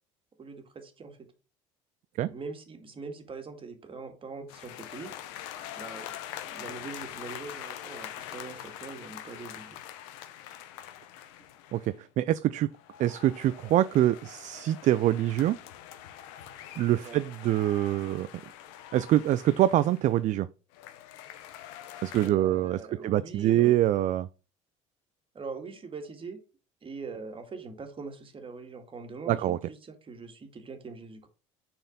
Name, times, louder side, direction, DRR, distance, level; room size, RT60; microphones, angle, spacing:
voice 1, 0.4-1.3 2.3-5.1 5.5-6.1 6.5-9.8 17.0-17.2 22.2-23.7 25.3-26.4 26.8-31.3, right 4 dB, 35° right, 2.1 m, -42 dB
sound 1, 4.5-12.0 12.7-20.2 20.7-22.3, left 11 dB, 75° left, 0.9 m, -44 dB
voice 2, 11.7-12.7 13.0-15.6 16.8-18.3 18.9-20.5 22.0-24.3 29.3-29.6, right 13 dB, 50° right, 0.4 m, -25 dB
6.6 x 4.4 x 3.8 m
hypercardioid pair, 70°, 16 cm